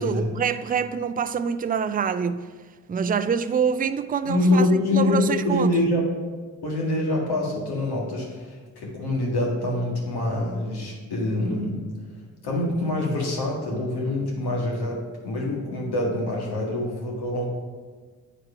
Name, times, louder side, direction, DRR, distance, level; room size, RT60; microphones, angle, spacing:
voice 1, 0.0-2.5 2.9-5.7, right 7 dB, 25° right, 0.4 m, -26 dB
voice 2, 4.2-6.1 6.6-11.8 12.4-17.4, left 2 dB, 75° left, 2.0 m, -25 dB
7.9 x 4.4 x 5.0 m
supercardioid pair, 45°, 39 cm